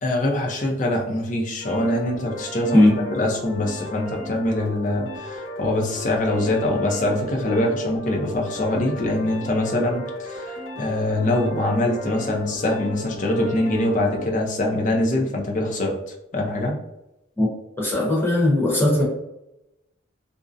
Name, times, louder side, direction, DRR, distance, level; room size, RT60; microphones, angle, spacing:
voice 1, 0.0-2.9 3.1-16.0 16.3-16.8, left 1 dB, 40° left, 0 dB, 0.5 m, -23 dB
sound 1, 1.6-14.3, left 1 dB, 85° left, 1.0 m, -35 dB
voice 2, 2.7-3.1 17.4-17.5 17.8-19.0, left 1 dB, 10° left, -5 dB, 0.8 m, -18 dB
2.5 x 2.0 x 2.5 m, 0.88 s
head